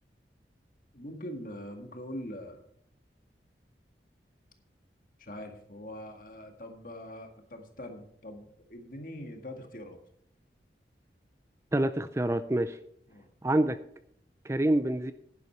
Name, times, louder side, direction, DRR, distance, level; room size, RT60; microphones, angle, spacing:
voice 1, 0.9-2.6 5.2-10.0 13.1-13.3, left 1 dB, 50° left, 1.9 m, -43 dB
voice 2, 11.7-12.8 13.4-13.8 14.5-15.1, right 1 dB, 15° right, 0.4 m, -26 dB
11.0 x 10.5 x 4.5 m
head